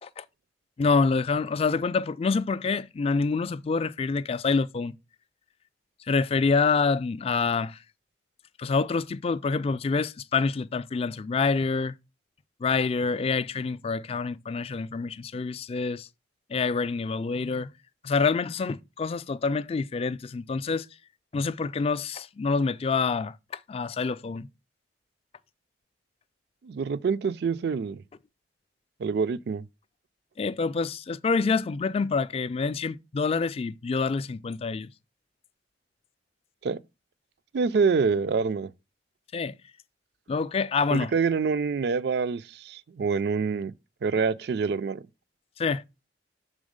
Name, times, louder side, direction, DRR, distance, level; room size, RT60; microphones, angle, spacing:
voice 1, 0.8-4.9 6.1-7.8 8.6-11.9 12.6-16.1 16.5-17.7 18.0-20.9 21.3-23.3 23.7-24.5 30.4-34.9 39.3-39.5 40.3-41.1 45.6-45.8, left 4 dB, 35° left, 0.3 m, -26 dB
voice 2, 26.6-28.0 29.0-29.7 36.6-36.8 37.5-38.7 40.9-43.7 44.0-45.0, right 5 dB, 60° right, 0.4 m, -26 dB
6.3 x 3.8 x 5.0 m
head